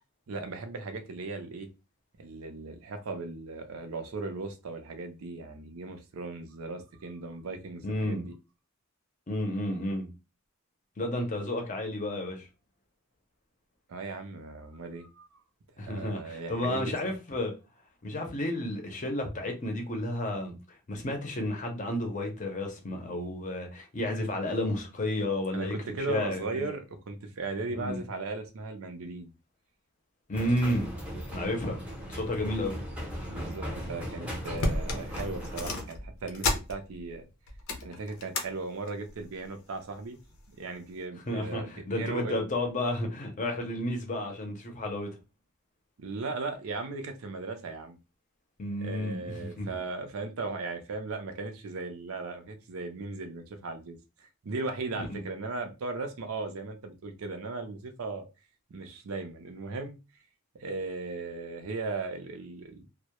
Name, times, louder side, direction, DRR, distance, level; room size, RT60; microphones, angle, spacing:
voice 1, 0.3-1.7 2.2-8.3 13.9-15.4 15.8-17.1 25.5-29.3 33.2-37.3 37.8-40.2 40.5-42.4 46.0-48.0 48.8-58.2 58.7-60.0 60.6-62.9, right 3 dB, 80° right, 0.5 m, -37 dB
voice 2, 7.8-8.3 9.3-10.1 11.0-12.5 15.8-17.5 18.0-26.7 27.7-28.0 30.3-30.9 31.3-31.8 32.1-32.8 41.3-45.1 48.6-49.7 55.0-55.2, left 1 dB, 35° left, 0.6 m, -32 dB
sound 1, 30.3-35.8, equal, 5° right, 0.6 m, -38 dB
sound 2, 34.0-34.1 34.4-37.1 37.5-38.5 38.9-39.2 40.0-40.5 40.9-41.0, left 2 dB, 85° left, 0.5 m, -33 dB
2.2 x 2.0 x 2.8 m
head